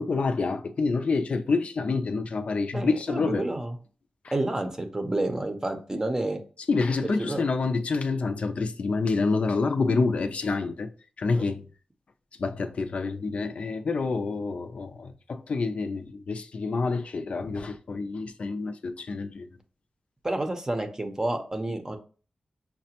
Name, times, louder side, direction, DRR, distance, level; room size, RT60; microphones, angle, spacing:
voice 1, 0.0-3.5 6.7-10.9 11.2-11.6 12.4-19.5, left 4 dB, 60° left, 0.5 m, -27 dB
voice 2, 2.7-3.7 4.3-6.4 7.2-7.4 11.3-11.4 20.2-22.0, right 2 dB, 25° right, 0.7 m, -29 dB
5.8 x 2.1 x 2.8 m
cardioid pair, 70°, 2 cm